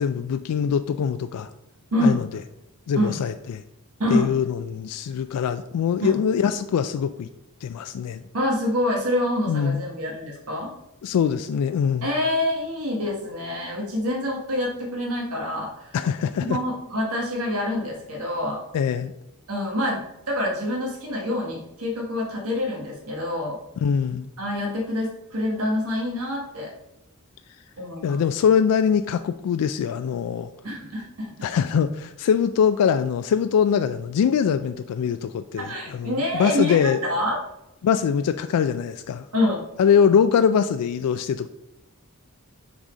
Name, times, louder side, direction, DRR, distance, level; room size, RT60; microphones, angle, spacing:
voice 1, 0.0-1.5 2.0-2.3 2.9-3.6 4.1-7.3 7.6-8.2 9.5-9.8 11.0-12.1 15.9-16.6 18.7-19.1 23.8-24.3 28.0-30.5 31.4-37.0 37.8-39.3 39.8-41.5, left 7 dB, 80° left, 10 dB, 0.3 m, -23 dB
voice 2, 8.3-10.7 12.0-15.9 16.4-18.6 19.5-20.0 20.3-23.6 24.4-26.7 27.8-28.2 30.6-31.3 35.6-37.4 39.3-39.6, left 1 dB, 80° right, -1 dB, 1.3 m, -26 dB
6.1 x 4.1 x 5.0 m, 0.88 s
head